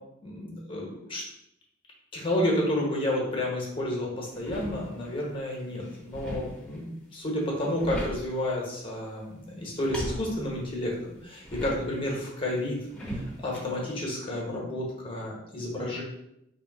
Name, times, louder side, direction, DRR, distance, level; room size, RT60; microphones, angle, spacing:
voice 1, 0.2-1.2 2.1-12.8 13.1-16.0, left 1 dB, 25° left, -2 dB, 1.1 m, -31 dB
sound 1, 4.3-5.2 5.6-6.9 7.4-8.5 9.6-12.1 12.9-13.7, equal, 5° left, 1.0 m, -38 dB
3.3 x 2.9 x 4.6 m, 0.81 s
head